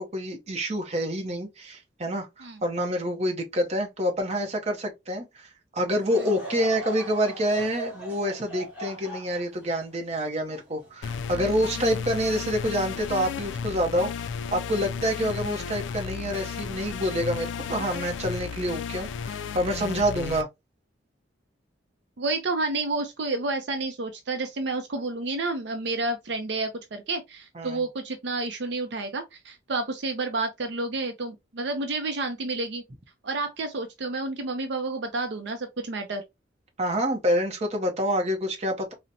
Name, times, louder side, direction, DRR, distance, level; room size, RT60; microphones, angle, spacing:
voice 1, 0.0-20.5 27.5-27.8 36.8-38.9, equal, 35° right, 0.7 m, -27 dB
Laughter / Crowd, 6.0-11.4 12.0-12.1 12.9-13.2, right 1 dB, 10° right, 1.4 m, -39 dB
sound 1, 11.0-20.4, left 6 dB, 75° left, 0.3 m, -34 dB
voice 2, 11.3-12.0 22.2-32.8 33.2-36.2, right 3 dB, 65° right, 0.5 m, -30 dB
3.9 x 2.1 x 2.7 m
head